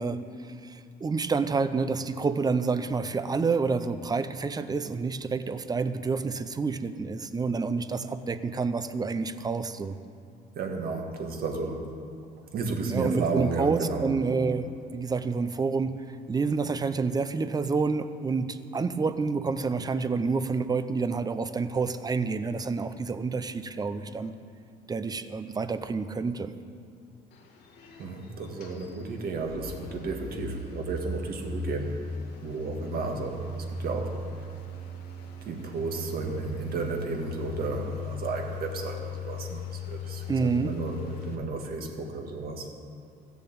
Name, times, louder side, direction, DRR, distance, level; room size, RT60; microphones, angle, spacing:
voice 1, 0.0-10.0 12.9-16.0 16.3-24.3 24.9-26.5 40.3-40.8, right 4 dB, 25° right, 11 dB, 0.7 m, -28 dB
voice 2, 10.6-11.9 12.5-14.1 28.0-31.9 32.4-34.5 35.5-42.7, right 4 dB, 60° right, 2 dB, 2.0 m, -33 dB
sound 1, 27.3-41.3, left 2 dB, 75° left, 1.9 m, -38 dB
14.0 x 7.0 x 8.6 m, 2.4 s
cardioid pair, 110°, 17 cm